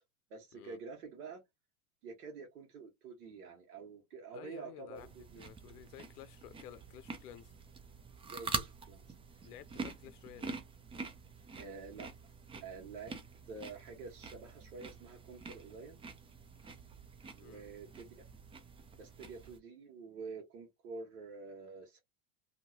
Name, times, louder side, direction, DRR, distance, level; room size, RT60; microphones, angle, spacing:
voice 1, 0.3-1.4 2.0-5.4 8.2-9.1 11.5-12.1 12.6-13.1 13.5-16.0 17.3-18.1 19.0-22.0, right 4 dB, 80° right, 1.3 m, -48 dB
voice 2, 4.3-5.1 5.4-7.5 9.4-10.5 17.4-17.6, left 11 dB, 80° left, 0.6 m, -53 dB
sound 1, 4.9-19.6, right 4 dB, 15° right, 0.4 m, -46 dB
2.9 x 2.7 x 2.7 m
hypercardioid pair, 105°, 45 cm